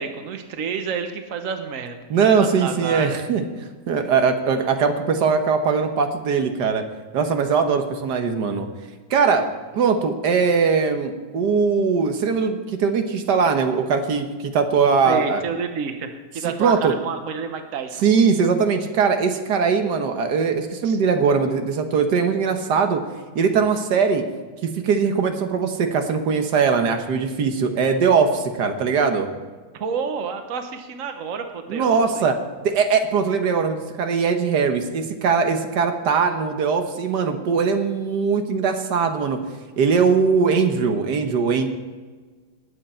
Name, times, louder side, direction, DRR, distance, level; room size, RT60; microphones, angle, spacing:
voice 1, 0.0-2.0 2.4-3.2 15.1-18.0 20.8-21.0 29.7-32.2, right 6 dB, 55° right, 7 dB, 1.4 m, -29 dB
voice 2, 2.1-3.4 3.9-6.8 7.1-8.7 9.1-9.4 9.7-15.4 16.4-16.9 18.0-23.0 23.3-24.2 24.6-29.3 31.7-32.4 32.6-39.4 39.8-41.7, right 5 dB, 90° right, 6 dB, 1.7 m, -20 dB
19.5 x 7.9 x 4.4 m, 1.4 s
omnidirectional pair, 1.8 m